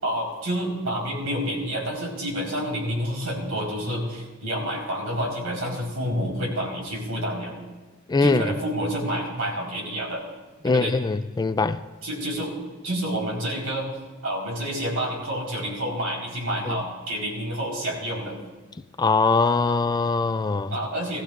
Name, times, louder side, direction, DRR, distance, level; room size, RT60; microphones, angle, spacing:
voice 1, 0.0-7.5 8.2-10.3 10.6-10.9 12.0-12.5 12.8-13.9 14.2-18.4 20.7-21.2, equal, 80° right, 4.4 m, -28 dB
voice 2, 8.1-8.5 10.6-11.8 16.7-16.8 19.0-20.8, left 4 dB, 20° left, 0.3 m, -22 dB
19.5 x 14.5 x 2.5 m
head